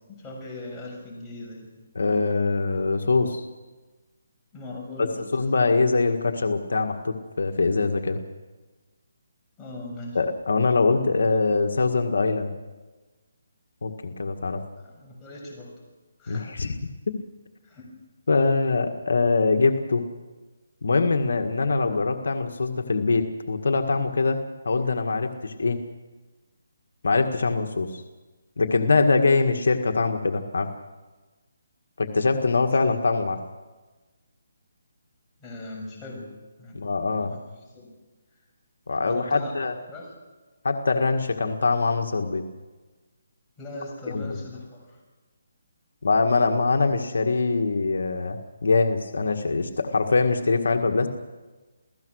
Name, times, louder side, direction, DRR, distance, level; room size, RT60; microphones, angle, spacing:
voice 1, 0.1-1.7 4.5-5.3 9.6-10.2 14.8-15.7 16.2-16.5 17.6-17.9 35.4-36.3 36.6-36.9 37.3-37.9 39.0-39.5 39.9-40.1 43.6-45.0, left 2 dB, 10° left, -3 dB, 6.8 m, -39 dB
voice 2, 1.9-3.4 5.0-5.1 5.3-8.2 10.1-12.6 13.8-14.6 16.3-16.8 17.1-17.2 18.3-20.0 20.8-24.4 24.6-25.8 27.0-28.0 28.6-30.7 32.0-33.4 36.7-37.3 38.9-39.7 40.6-42.4 44.1-44.4 46.0-51.1, left 3 dB, 75° left, 5 dB, 1.8 m, -23 dB
29.0 x 17.0 x 6.5 m, 1.3 s
hypercardioid pair, 165°, 0 cm